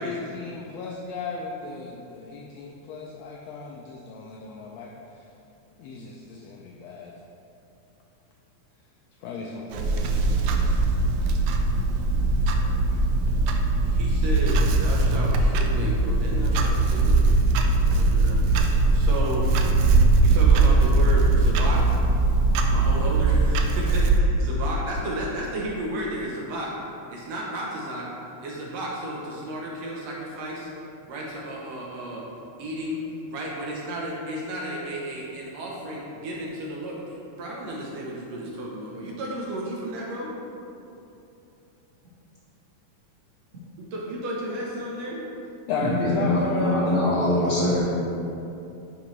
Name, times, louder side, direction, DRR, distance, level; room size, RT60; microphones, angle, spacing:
voice 1, 0.0-5.2 5.8-7.2 9.2-10.1 10.9-11.0 45.7-47.6, left 3 dB, 85° left, -1 dB, 1.5 m, -33 dB
voice 2, 9.3-9.7 14.0-17.2 17.8-18.4 18.9-19.4 20.2-21.8 22.7-26.7 27.1-28.1 28.4-30.7 31.1-32.2 32.6-33.0 33.3-40.3 43.8-45.2, right 1 dB, 70° right, -3 dB, 1.8 m, -33 dB
Clock, 9.7-24.2, right 3 dB, 90° right, 1.4 m, -20 dB
voice 3, 45.8-47.9, left 1 dB, 45° right, -11 dB, 0.7 m, -23 dB
9.0 x 5.0 x 3.1 m, 2.8 s
omnidirectional pair, 3.5 m